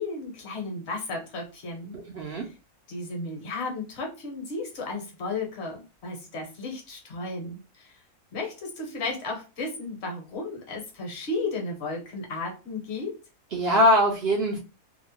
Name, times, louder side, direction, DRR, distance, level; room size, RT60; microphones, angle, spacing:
voice 1, 0.0-2.0 2.2-2.4 2.9-7.9 8.3-13.2, left 3 dB, 50° left, 1.0 m, -34 dB
voice 2, 1.9-2.5 13.5-14.6, equal, 60° right, 0.6 m, -22 dB
2.7 x 2.0 x 2.9 m
omnidirectional pair, 1.6 m